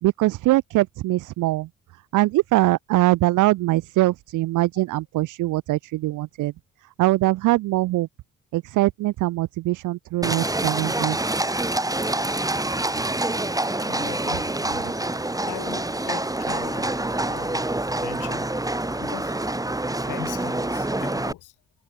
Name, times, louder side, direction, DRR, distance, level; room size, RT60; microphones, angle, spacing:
voice 1, 0.0-1.7 2.1-6.5 7.0-8.1 8.5-11.2, right 18 dB, 90° right, 0.9 m, -22 dB
Livestock farm animals working animals, 10.2-21.3, right 2 dB, 10° right, 7.3 m, -26 dB
voice 2, 13.8-14.7 15.4-17.7 18.0-18.5 19.0-19.3 20.0-21.5, left 15 dB, 85° left, 5.9 m, -40 dB
cardioid pair, 90°, 30 cm